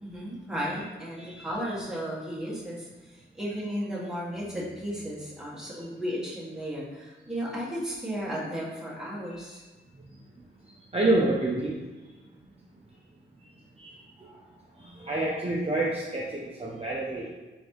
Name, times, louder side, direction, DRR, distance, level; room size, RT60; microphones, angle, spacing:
voice 1, 0.0-9.7, equal, 5° right, -7 dB, 1.4 m, -34 dB
voice 2, 10.9-11.7 13.8-14.3 14.8-17.3, right 2 dB, 30° right, -5 dB, 0.7 m, -28 dB
3.8 x 3.5 x 3.1 m, 1.2 s
cardioid pair, 60°, 21 cm